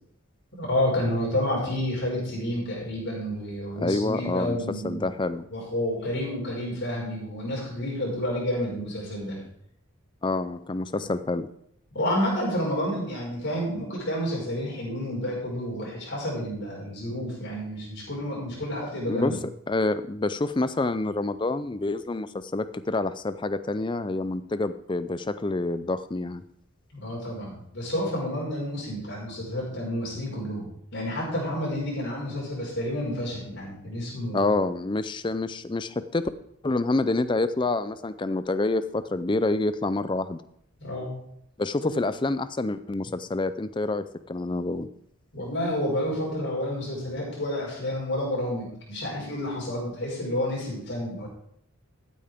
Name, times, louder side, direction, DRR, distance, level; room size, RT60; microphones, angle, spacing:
voice 1, 0.6-5.1 5.5-9.4 11.0-11.1 11.9-19.3 26.9-34.5 40.8-41.2 45.3-51.3, left 1 dB, 50° left, -5 dB, 5.1 m, -30 dB
voice 2, 3.8-4.6 4.8-5.5 10.2-11.5 19.1-19.3 19.7-22.3 22.5-26.4 34.3-36.3 36.6-40.4 41.6-44.9, left 2 dB, 20° left, 13 dB, 0.4 m, -27 dB
14.5 x 8.6 x 3.5 m, 0.72 s
head